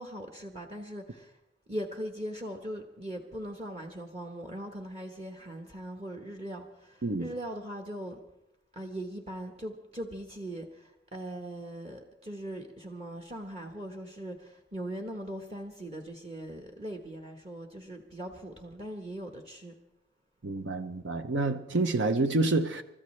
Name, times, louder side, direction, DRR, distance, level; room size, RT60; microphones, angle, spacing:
voice 1, 0.0-1.3 1.7-8.2 8.7-19.7, right 1 dB, 35° right, 1.2 m, -40 dB
voice 2, 20.4-22.8, right 2 dB, 80° right, 0.8 m, -28 dB
30.0 x 13.5 x 3.2 m
head